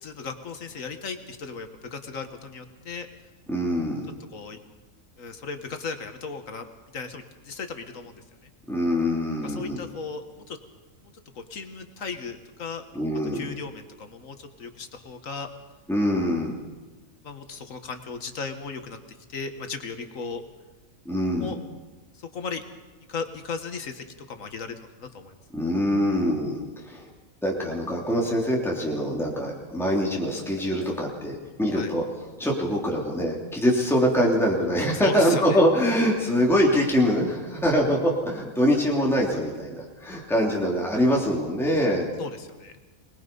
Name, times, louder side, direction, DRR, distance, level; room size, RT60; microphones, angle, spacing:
voice 1, 0.0-3.1 4.3-4.6 5.2-6.7 6.9-8.5 9.4-10.6 11.0-12.9 13.3-15.5 17.2-19.0 19.3-20.4 21.4-21.6 22.1-22.6 23.1-25.4 31.7-31.9 34.9-35.6 42.2-42.7, left 4 dB, 70° left, 7 dB, 1.8 m, -36 dB
voice 2, 3.5-4.1 8.7-9.8 12.9-13.5 15.9-16.5 21.0-21.5 25.5-27.0 27.4-32.0 32.4-42.1, equal, ahead, -3 dB, 3.0 m, -24 dB
25.0 x 20.5 x 5.4 m, 1.2 s
omnidirectional pair, 1.4 m